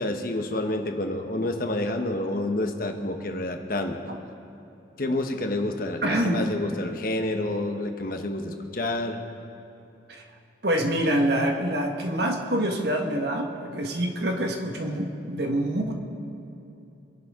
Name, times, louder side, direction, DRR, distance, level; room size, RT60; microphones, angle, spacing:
voice 1, 0.0-4.0 5.0-9.2, left 1 dB, 50° left, 5 dB, 1.1 m, -28 dB
voice 2, 6.0-6.5 10.1-10.2 10.6-15.9, right 1 dB, 65° right, 3 dB, 1.5 m, -26 dB
25.0 x 11.0 x 3.7 m, 2.8 s
head